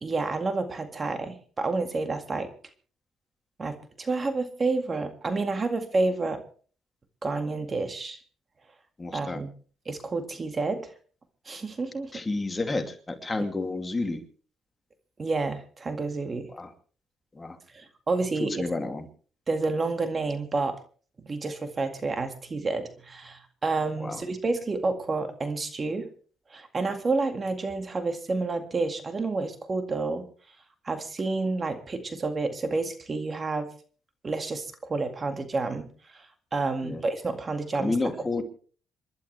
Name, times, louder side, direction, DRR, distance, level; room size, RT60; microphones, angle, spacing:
voice 1, 0.0-2.5 3.6-6.4 7.2-8.2 9.1-9.5 9.9-10.9 11.5-12.1 15.2-16.5 17.7-18.7 19.5-20.8 21.2-26.1 26.5-30.3 30.8-33.7 34.2-35.9 36.1-38.0, right 3 dB, 35° right, 7 dB, 2.0 m, -29 dB
voice 2, 9.0-9.4 12.1-14.2 16.5-16.7 17.3-17.6 18.4-19.0 24.0-24.2 36.8-37.0 37.8-38.4, left 2 dB, 20° left, 5 dB, 2.5 m, -30 dB
27.5 x 12.0 x 3.3 m, 0.42 s
cardioid pair, 90°, 0 cm